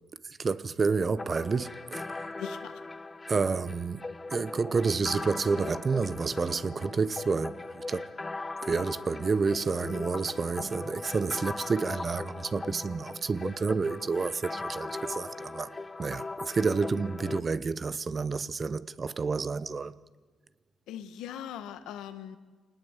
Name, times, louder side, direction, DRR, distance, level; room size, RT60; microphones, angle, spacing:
voice 1, 0.2-2.3 3.3-4.0 4.3-8.1 8.6-15.7 16.0-19.9, right 4 dB, 35° right, 0.9 m, -29 dB
sound 1, 1.2-17.4, left 3 dB, 20° left, 1.0 m, -39 dB
voice 2, 2.3-2.8 20.9-22.4, left 10 dB, 90° left, 1.6 m, -40 dB
25.5 x 19.5 x 8.3 m
cardioid pair, 90°, 0 cm